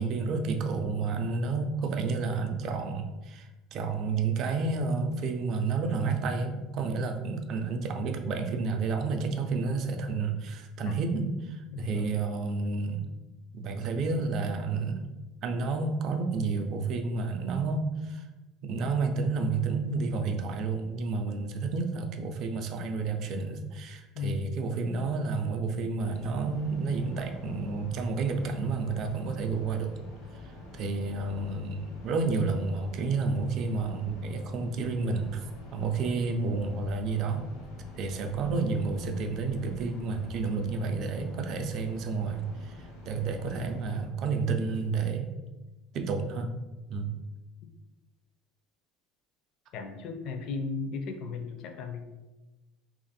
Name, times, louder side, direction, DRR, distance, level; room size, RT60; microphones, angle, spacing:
voice 1, 0.0-13.0 13.5-15.1 15.4-18.2 18.6-29.9 30.7-35.4 35.7-37.5 38.0-45.3 45.9-46.5 46.9-47.2, right 4 dB, 40° right, 5 dB, 0.4 m, -30 dB
voice 2, 11.7-12.1 24.1-24.6 49.7-52.1, left 4 dB, 45° left, 5 dB, 0.4 m, -36 dB
sound 1, 26.0-44.0, left 1 dB, 85° left, 1.0 m, -48 dB
3.2 x 2.5 x 4.0 m, 1.1 s
cardioid pair, 175°, 0 cm